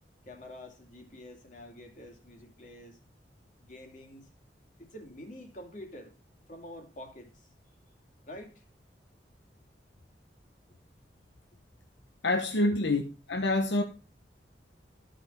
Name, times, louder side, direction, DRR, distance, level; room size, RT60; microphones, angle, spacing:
voice 1, 0.3-3.0 3.6-4.3 4.8-6.2 6.5-7.5 8.3-8.6 12.7-12.8, left 1 dB, 45° left, 2.3 m, -47 dB
voice 2, 12.2-13.0 13.3-13.8, left 2 dB, 80° left, 1.0 m, -26 dB
13.0 x 5.2 x 5.2 m
head